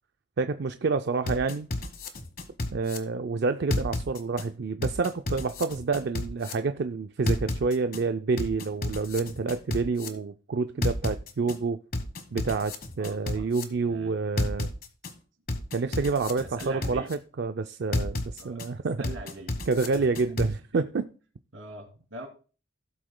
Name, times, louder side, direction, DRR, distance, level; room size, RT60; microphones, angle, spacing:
voice 1, 0.4-1.7 2.7-11.8 12.3-14.7 15.7-19.0 19.7-21.1, right 4 dB, 55° right, 0.4 m, -28 dB
sound 1, 1.3-3.0 3.7-4.4 4.8-6.5 7.3-8.0 8.4-10.1 10.8-11.6 11.9-13.6 14.4-15.1 15.5-17.1 17.9-18.7 19.0-20.5, left 2 dB, 50° left, 1.3 m, -31 dB
voice 2, 13.0-14.1 16.4-17.1 18.4-18.6 19.0-19.6 20.0-20.2 20.7-20.8 21.5-22.3, right 1 dB, 80° right, 2.8 m, -43 dB
16.5 x 7.8 x 2.2 m
head